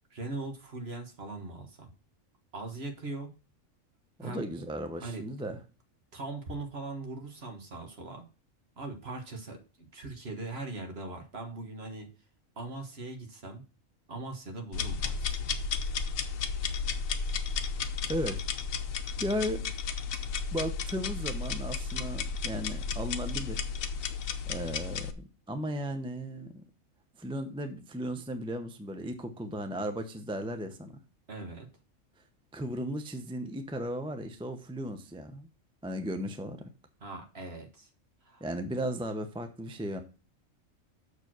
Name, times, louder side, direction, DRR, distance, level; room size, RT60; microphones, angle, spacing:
voice 1, 0.1-1.9 2.5-3.3 4.2-4.5 5.0-5.3 6.1-8.2 8.8-12.1 12.6-13.6 14.1-15.5 31.3-31.7 37.0-37.9 38.2-38.4, right 3 dB, 50° right, 4 dB, 1.7 m, -40 dB
voice 2, 4.2-5.6 18.1-18.4 19.2-19.6 20.5-23.7 24.5-26.6 27.2-30.9 32.5-35.5 35.8-36.7 38.4-40.0, equal, 5° right, 7 dB, 0.6 m, -35 dB
sound 1, 14.7-25.1, left 5 dB, 80° left, 1.2 m, -33 dB
6.8 x 4.6 x 6.0 m, 0.33 s
omnidirectional pair, 1.4 m